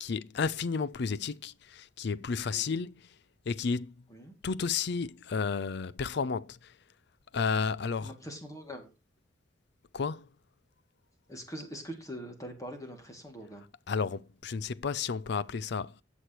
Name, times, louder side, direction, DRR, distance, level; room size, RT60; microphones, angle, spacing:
voice 1, 0.0-3.2 3.5-4.0 4.4-6.7 7.3-8.1 9.9-10.3 13.9-16.0, left 5 dB, 60° left, 0.5 m, -32 dB
voice 2, 2.5-2.8 4.1-4.3 8.0-8.9 11.3-13.6, equal, 20° left, 2.4 m, -43 dB
18.5 x 6.3 x 3.0 m
head